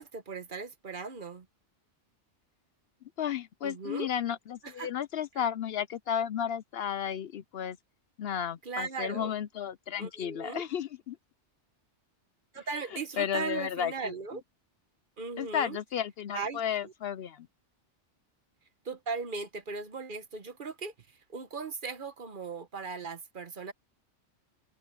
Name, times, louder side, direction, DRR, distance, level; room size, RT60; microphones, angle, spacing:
voice 1, 0.0-1.4 3.6-4.1 4.6-4.9 8.6-9.4 10.0-10.6 12.5-14.4 15.2-15.8 16.3-16.9 18.8-20.9 21.3-23.7, right 4 dB, 45° right, 1.2 m, -38 dB
voice 2, 3.2-7.8 8.2-11.2 12.9-14.1 15.4-17.5, left 9 dB, 65° left, 0.7 m, -33 dB
open air
omnidirectional pair, 1.2 m